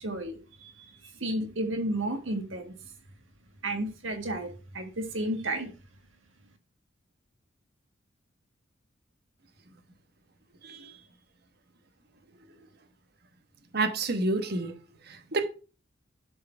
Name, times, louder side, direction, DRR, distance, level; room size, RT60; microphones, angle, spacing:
voice 1, 0.0-2.7 3.6-5.7, right 1 dB, 75° right, 1.7 m, -32 dB
voice 2, 13.7-14.7 15.3-15.5, right 2 dB, 55° right, 1.2 m, -28 dB
11.0 x 4.8 x 4.4 m
head